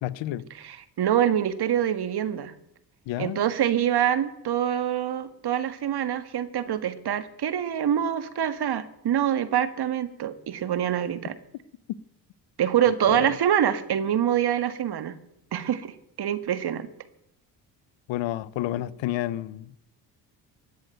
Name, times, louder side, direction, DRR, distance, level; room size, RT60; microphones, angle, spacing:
voice 1, 0.0-0.5 3.1-3.4 13.1-13.3 18.1-19.8, left 14 dB, 75° left, 0.9 m, -30 dB
voice 2, 0.6-2.5 3.2-11.3 12.6-15.2 15.5-16.9, right 10 dB, 55° right, 1.7 m, -25 dB
14.5 x 9.6 x 9.1 m
supercardioid pair, 60°, 46 cm